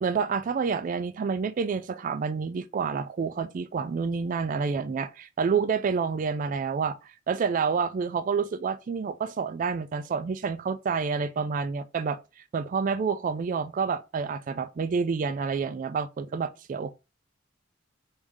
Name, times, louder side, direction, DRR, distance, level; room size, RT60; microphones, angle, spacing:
voice 1, 0.0-16.9, right 5 dB, 45° right, 0.3 m, -28 dB
3.6 x 2.7 x 4.7 m
head